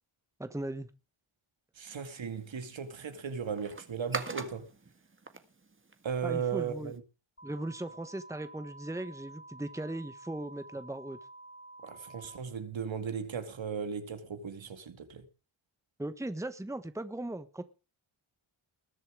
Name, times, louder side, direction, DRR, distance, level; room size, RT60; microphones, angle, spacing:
voice 1, 0.4-0.9 6.2-6.9 7.4-11.2 16.0-17.6, right 1 dB, 5° right, 1.3 m, -38 dB
voice 2, 1.8-4.7 6.0-7.0 11.8-15.3, right 6 dB, 65° right, 2.4 m, -36 dB
sound 1, 1.9-7.0, right 3 dB, 25° right, 1.8 m, -45 dB
sound 2, 7.4-12.4, right 2 dB, 25° left, 2.0 m, -51 dB
20.5 x 7.6 x 4.8 m
wide cardioid pair, 110°, 49 cm